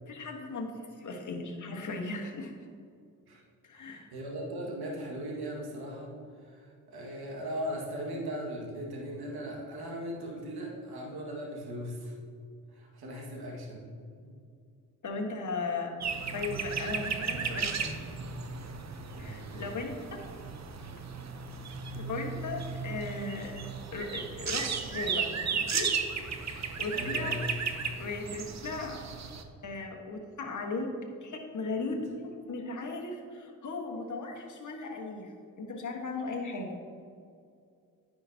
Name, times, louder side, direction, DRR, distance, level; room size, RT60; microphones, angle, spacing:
voice 1, 0.1-2.5 3.6-4.1 15.0-18.0 19.2-20.2 22.0-23.6 23.9-25.9 26.4-27.3 28.0-29.0 29.6-30.9 31.2-35.3 35.6-36.8, left 3 dB, 50° left, 1 dB, 1.4 m, -37 dB
voice 2, 3.7-6.1 6.4-12.2 12.7-13.9 14.2-14.4 19.1-19.6 26.9-27.6, equal, 70° right, -2 dB, 1.9 m, -38 dB
sound 1, 16.0-29.4, right 5 dB, 45° right, 0.8 m, -35 dB
9.8 x 5.9 x 2.8 m, 2.3 s
supercardioid pair, 50°, 40 cm